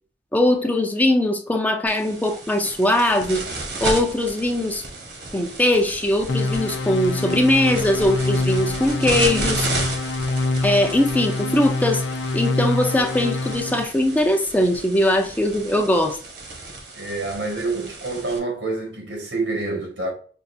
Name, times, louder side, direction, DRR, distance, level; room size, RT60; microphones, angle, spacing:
voice 1, 0.3-3.4 3.8-4.8 5.3-9.7 10.6-12.0 12.3-16.2, left 1 dB, 10° left, 0.5 m, -20 dB
sound 1, 1.9-18.4, right 2 dB, 65° right, 1.1 m, -33 dB
sound 2, 6.3-13.8, left 2 dB, 80° left, 0.6 m, -25 dB
voice 2, 16.9-20.1, right 3 dB, 90° right, 1.8 m, -27 dB
5.5 x 2.5 x 2.6 m
head